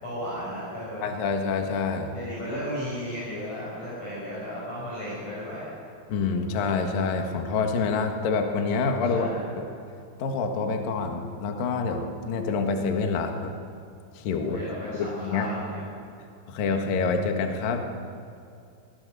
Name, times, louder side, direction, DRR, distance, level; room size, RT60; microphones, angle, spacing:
voice 1, 0.0-1.1 2.1-5.7 9.1-9.5 14.4-15.8, equal, 40° left, -8 dB, 7.5 m, -34 dB
voice 2, 1.0-2.1 6.1-9.3 9.6-9.7 10.2-13.5 14.1-14.6 14.9-15.5 16.5-17.9, left 4 dB, 60° left, 4 dB, 2.8 m, -27 dB
23.5 x 20.0 x 6.9 m, 2.5 s
omnidirectional pair, 5.6 m